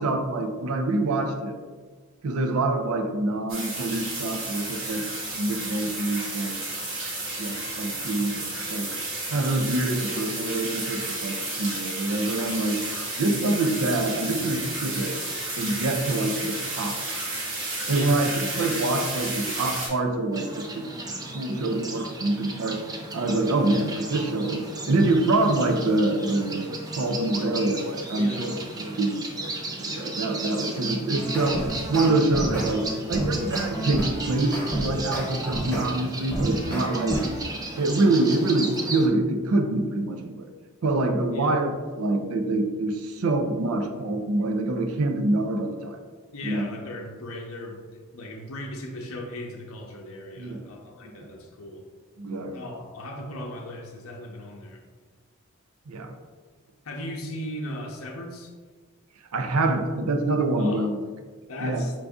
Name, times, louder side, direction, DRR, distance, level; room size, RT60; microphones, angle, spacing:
voice 1, 0.0-1.6 2.2-5.0 5.3-6.6 7.4-8.9 9.3-12.8 13.2-15.2 15.6-17.0 17.9-20.8 21.1-22.8 23.1-29.5 29.8-37.2 37.8-40.5 40.8-46.0 46.4-46.7 50.4-50.6 51.0-51.3 52.2-52.5 55.9-56.1 59.3-61.0 61.6-61.9, right 2 dB, 85° right, 5 dB, 0.5 m, -26 dB
sound 1, 3.5-19.9, right 2 dB, 60° right, 1.2 m, -32 dB
sound 2, 20.3-39.1, right 2 dB, 15° right, 0.3 m, -35 dB
voice 2, 28.2-28.5 41.3-41.6 46.3-51.9 52.5-54.8 56.8-58.5 60.6-60.8 61.5-61.9, left 1 dB, 75° left, 0 dB, 0.6 m, -37 dB
sound 3, 31.1-35.9 36.3-37.4, right 1 dB, 5° left, 0.9 m, -30 dB
4.6 x 2.6 x 3.5 m, 1.4 s
head